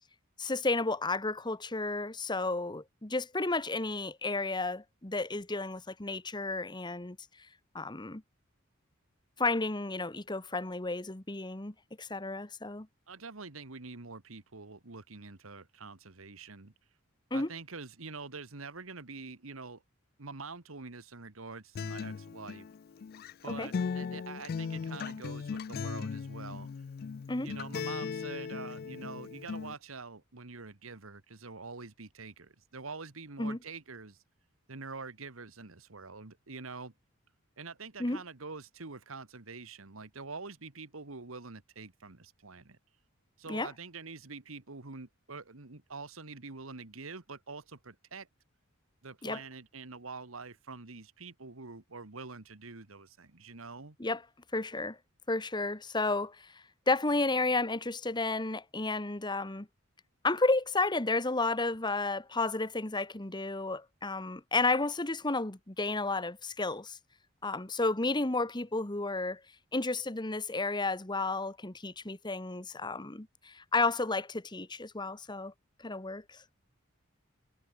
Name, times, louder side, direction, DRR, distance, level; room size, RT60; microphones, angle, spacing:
voice 1, 0.4-7.2 7.7-8.2 9.4-12.9 17.3-17.5 23.6-23.7 27.3-27.5 33.4-33.6 38.0-38.2 43.5-43.7 49.2-49.4 54.0-54.2 54.5-55.0 55.3-59.7 60.2-67.0 67.4-69.4 69.7-75.5 75.8-76.4, left 3 dB, 20° left, 1.4 m, -32 dB
voice 2, 13.1-16.7 17.3-19.8 20.2-22.7 23.4-26.7 27.4-34.2 34.7-36.9 37.6-42.8 43.4-48.3 49.0-54.0, right 4 dB, 80° right, 1.7 m, -45 dB
Acoustic guitar, 21.7-29.7, left 5 dB, 45° left, 0.3 m, -38 dB
head